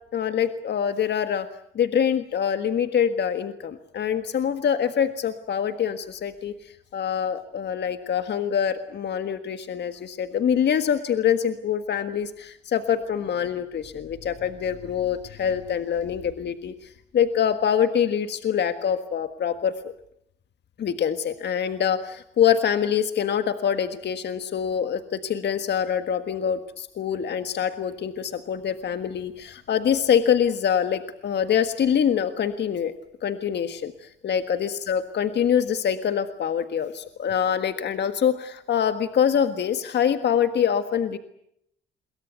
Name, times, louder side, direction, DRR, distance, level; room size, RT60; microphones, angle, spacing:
voice 1, 0.1-1.5 1.7-16.7 17.1-19.7 20.8-32.9 33.2-41.2, left 8 dB, 60° left, 9 dB, 1.6 m, -25 dB
27.0 x 22.5 x 8.2 m, 0.74 s
cardioid pair, 90°, 20 cm